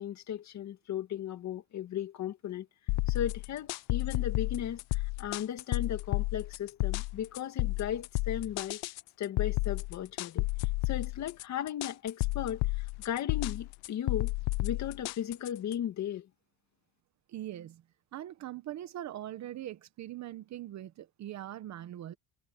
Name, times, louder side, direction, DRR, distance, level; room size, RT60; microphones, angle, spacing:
voice 1, 0.0-2.7 3.1-8.8 9.2-10.5 10.9-14.3 14.6-16.3, left 10 dB, 45° left, 2.2 m, -36 dB
sound 1, 2.9-15.7, left 22 dB, 75° left, 0.7 m, -32 dB
voice 2, 17.3-17.8 18.1-22.1, right 13 dB, 45° right, 1.0 m, -41 dB
cardioid pair, 150°, 38 cm